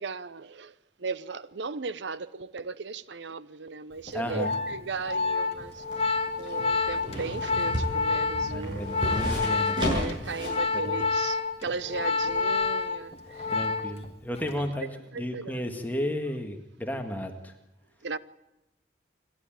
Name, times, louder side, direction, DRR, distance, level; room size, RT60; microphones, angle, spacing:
voice 1, 0.0-9.1 9.7-13.5 14.8-14.9 15.1-15.6 18.0-18.2, right 4 dB, 85° right, 0.7 m, -37 dB
Organ, 4.1-14.1 14.4-14.7, left 4 dB, 35° left, 1.7 m, -29 dB
voice 2, 4.1-4.6 8.4-9.9 10.7-11.0 13.5-14.9 15.2-17.5, equal, 10° left, 1.8 m, -33 dB
sound 1, 5.6-10.7 11.0-11.1, equal, 25° right, 7.9 m, -33 dB
28.0 x 11.5 x 9.0 m
head